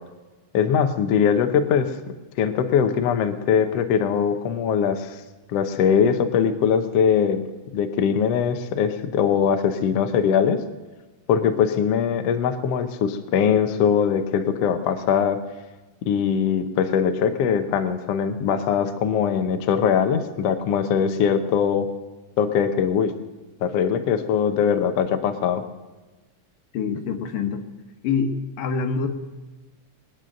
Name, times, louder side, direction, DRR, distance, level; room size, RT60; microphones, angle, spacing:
voice 1, 0.5-1.9 2.4-5.2 5.5-7.4 7.7-10.6 11.3-15.4 16.0-21.9 22.4-23.1 23.6-25.6, left 7 dB, 65° left, 7 dB, 1.7 m, -21 dB
voice 2, 26.7-27.6 28.0-28.3 28.6-29.1, left 5 dB, 85° left, 5 dB, 3.0 m, -25 dB
21.5 x 9.4 x 6.5 m, 1.2 s
omnidirectional pair, 3.8 m